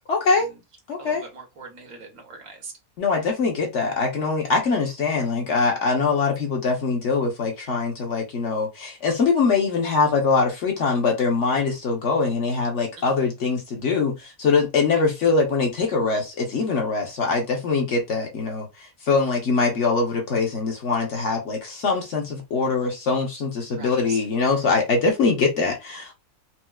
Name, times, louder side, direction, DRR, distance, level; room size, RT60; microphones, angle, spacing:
voice 1, 0.1-0.5 0.9-1.2 3.0-26.1, left 4 dB, 55° left, 1.1 m, -23 dB
voice 2, 1.0-2.7 13.0-13.1 23.7-24.2, right 4 dB, 80° right, 1.5 m, -41 dB
4.2 x 2.0 x 2.3 m
omnidirectional pair, 1.5 m